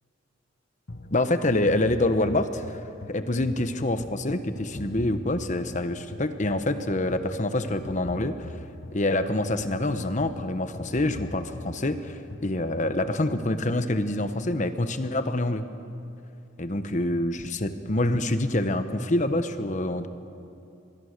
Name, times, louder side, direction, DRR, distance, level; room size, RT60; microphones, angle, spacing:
sound 1, 0.9-13.3, left 1 dB, 60° left, 1.4 m, -42 dB
voice 1, 1.1-2.8 3.1-8.5 8.9-15.6 16.6-20.1, left 1 dB, 40° left, 9 dB, 1.1 m, -26 dB
25.5 x 21.5 x 6.7 m, 2.7 s
head